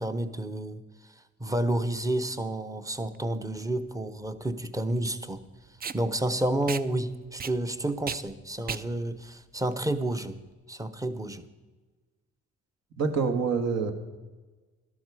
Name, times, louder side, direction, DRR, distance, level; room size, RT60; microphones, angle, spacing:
voice 1, 0.0-5.4 5.9-10.4 10.7-11.4, right 1 dB, 10° right, 10 dB, 0.9 m, -30 dB
Packing tape duct tape, 3.0-10.5, right 6 dB, 30° right, 0.5 m, -40 dB
voice 2, 13.0-13.9, right 5 dB, 60° right, 6 dB, 1.8 m, -26 dB
12.5 x 12.0 x 4.8 m, 1.3 s
cardioid pair, 90°, 30 cm